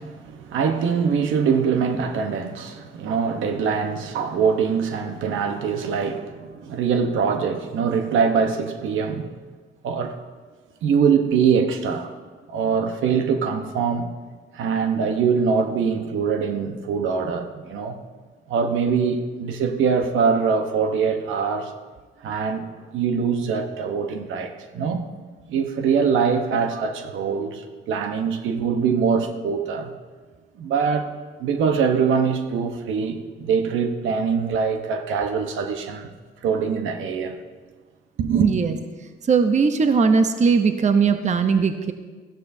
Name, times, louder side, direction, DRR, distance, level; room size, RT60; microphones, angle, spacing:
voice 1, 0.0-9.3 9.8-10.1 10.8-12.1 12.5-14.1 14.5-18.0 18.5-21.7 22.2-25.0 25.5-29.9 30.6-31.1 31.4-36.1 36.4-37.4 38.2-38.5, right 6 dB, 80° right, 1.1 m, -23 dB
voice 2, 38.4-38.7 39.3-41.9, right 5 dB, 35° right, 0.8 m, -19 dB
14.5 x 13.0 x 2.7 m
cardioid pair, 90°, 20 cm